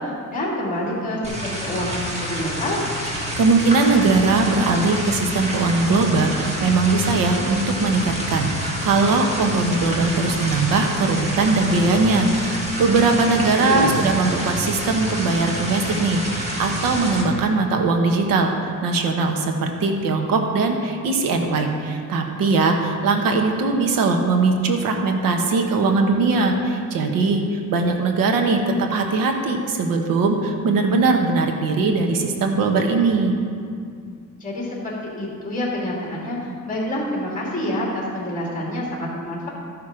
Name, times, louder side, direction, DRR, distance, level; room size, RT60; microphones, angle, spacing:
voice 1, 0.0-2.8 13.6-14.0 34.4-39.5, left 1 dB, 25° left, -4 dB, 2.7 m, -27 dB
sound 1, 1.2-17.2, equal, 20° right, 1.6 m, -28 dB
voice 2, 3.4-33.4, right 3 dB, 85° right, 3 dB, 1.2 m, -20 dB
13.0 x 6.1 x 5.0 m, 2.3 s
cardioid pair, 145°, 33 cm